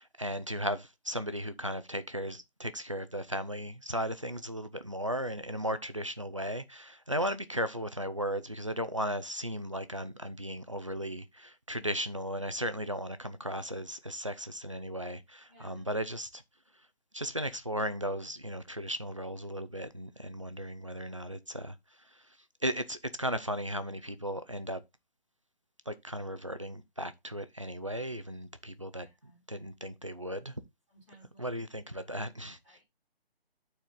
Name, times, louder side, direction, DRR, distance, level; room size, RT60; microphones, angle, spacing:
voice 1, 0.0-16.4 17.1-21.8 22.6-24.8 25.9-29.1 29.5-30.5 31.4-32.6, equal, 30° right, 0.4 m, -36 dB
voice 2, 15.5-16.0 29.0-29.4 30.9-31.5 31.9-32.8, right 2 dB, 5° right, 3.2 m, -60 dB
8.8 x 4.2 x 3.7 m
hypercardioid pair, 175°, 31 cm